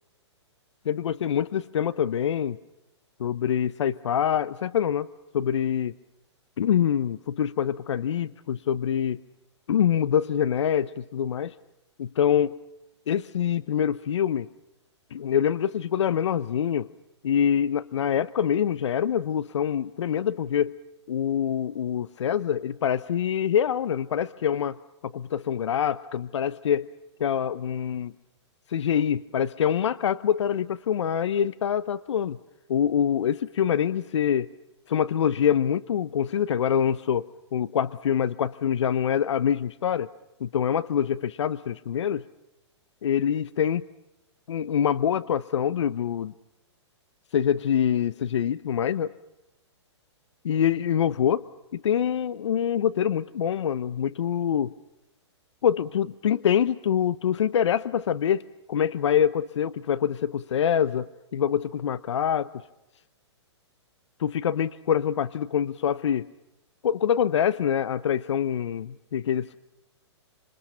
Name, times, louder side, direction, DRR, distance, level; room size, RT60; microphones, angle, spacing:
voice 1, 0.8-2.6 3.2-5.1 5.3-5.9 6.6-9.2 9.7-11.5 12.0-12.6 13.1-14.5 15.1-16.9 17.2-20.8 21.1-24.8 25.0-26.9 27.2-28.1 28.7-32.4 32.7-34.5 34.9-40.1 40.4-42.2 43.0-43.9 44.5-46.3 47.3-49.1 50.4-51.4 51.7-54.7 55.6-58.4 58.7-62.5 64.2-66.3 66.8-69.6, left 9 dB, 75° left, 15 dB, 0.8 m, -25 dB
27.5 x 27.5 x 5.7 m, 0.92 s
hypercardioid pair, 135°, 15 cm